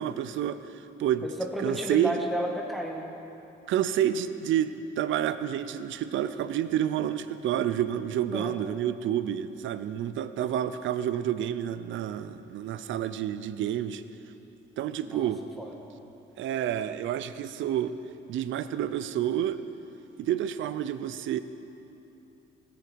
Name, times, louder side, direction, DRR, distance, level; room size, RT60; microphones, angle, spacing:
voice 1, 0.0-1.3 1.6-2.2 3.7-14.0 14.8-15.4 16.4-17.9 18.3-19.6 20.2-21.4, right 10 dB, 75° right, 13 dB, 0.6 m, -29 dB
voice 2, 1.2-3.1 8.3-8.6 15.0-15.3 15.6-15.7, equal, ahead, 0 dB, 1.9 m, -32 dB
20.0 x 9.0 x 4.7 m, 2.8 s
cardioid pair, 90°, 20 cm